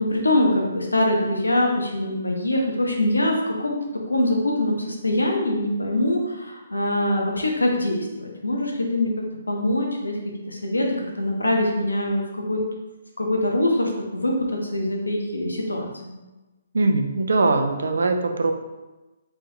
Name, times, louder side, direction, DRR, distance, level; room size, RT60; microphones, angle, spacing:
voice 1, 0.0-3.8 4.1-9.1 9.5-10.1 10.5-10.9 11.2-12.6 13.2-16.2, left 1 dB, 80° left, 0 dB, 0.6 m, -23 dB
voice 2, 16.7-18.5, right 3 dB, 65° right, 5 dB, 0.3 m, -21 dB
3.4 x 2.9 x 2.2 m, 1.1 s
figure-of-eight pair, 135°, 0 cm